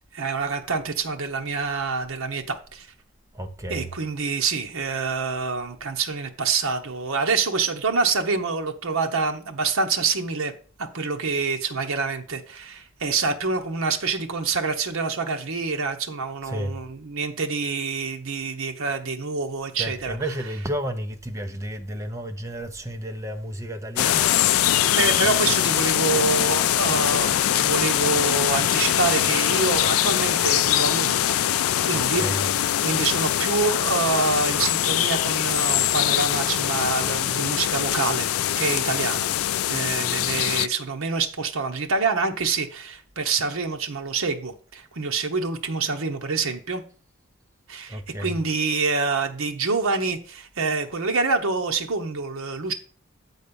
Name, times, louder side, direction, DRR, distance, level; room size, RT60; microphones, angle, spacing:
voice 1, 0.1-2.9 3.7-10.5 10.8-20.2 24.9-31.4 31.9-32.4 32.8-38.3 38.6-39.3 39.6-46.8 47.7-52.7, right 4 dB, 75° right, 0.9 m, -26 dB
voice 2, 3.3-4.0 16.4-16.8 19.8-24.3 31.9-32.5 47.9-48.4, right 1 dB, 15° right, 0.7 m, -32 dB
sound 1, 24.0-40.7, left 11 dB, 80° left, 0.3 m, -22 dB
7.8 x 4.1 x 6.8 m
head